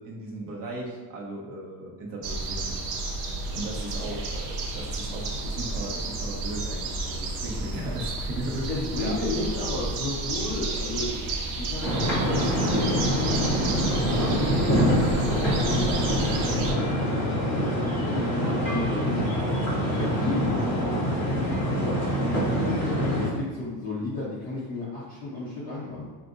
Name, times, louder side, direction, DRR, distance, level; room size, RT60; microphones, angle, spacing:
voice 1, 0.0-2.8 3.2-9.3 22.3-22.6, right 1 dB, 50° right, -3 dB, 1.0 m, -37 dB
sound 1, 2.2-16.7, right 2 dB, 85° right, 0.8 m, -32 dB
voice 2, 8.7-11.2 11.6-26.1, left 2 dB, 20° left, -8 dB, 0.4 m, -33 dB
sound 2, 11.8-23.3, equal, 5° left, 0.8 m, -25 dB
5.9 x 2.5 x 2.5 m, 1.3 s
cardioid pair, 180°, 45 cm